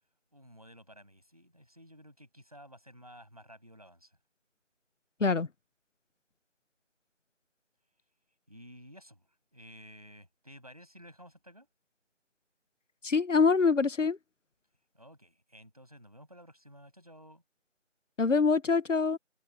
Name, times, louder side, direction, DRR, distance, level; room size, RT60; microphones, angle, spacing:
voice 1, 0.3-4.2 8.5-11.7 14.9-17.4, equal, 30° right, 7.6 m, -53 dB
voice 2, 13.0-14.2 18.2-19.2, left 4 dB, 90° left, 0.8 m, -25 dB
figure-of-eight pair, 180°, 36 cm